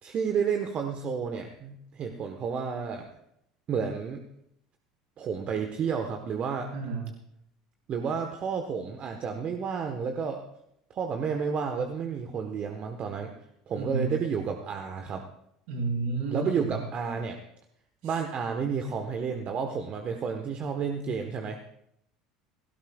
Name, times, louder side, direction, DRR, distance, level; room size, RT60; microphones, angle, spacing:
voice 1, 0.0-3.1 3.7-4.2 5.2-6.7 7.9-10.4 10.9-13.3 13.7-15.3 16.3-17.4 18.0-21.6, right 6 dB, 40° right, 4 dB, 1.2 m, -31 dB
voice 2, 6.7-7.1 13.7-14.2 15.7-16.8, right 3 dB, 70° right, -4 dB, 6.7 m, -31 dB
17.0 x 16.0 x 2.4 m, 0.74 s
hypercardioid pair, 70°, 3 cm